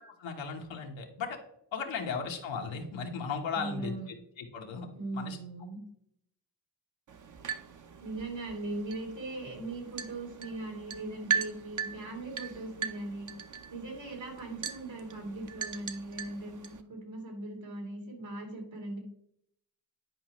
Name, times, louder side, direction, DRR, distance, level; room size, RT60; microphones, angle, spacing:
voice 1, 0.2-1.4 1.7-5.4, left 5 dB, 90° left, 2 dB, 1.3 m, -36 dB
voice 2, 3.5-4.1 5.0-5.8 8.0-13.3 13.7-19.0, right 2 dB, 80° right, -1 dB, 3.0 m, -39 dB
sound 1, 7.1-16.8, right 7 dB, 40° right, 0.7 m, -39 dB
10.5 x 4.8 x 3.0 m, 0.73 s
cardioid pair, 55°, 45 cm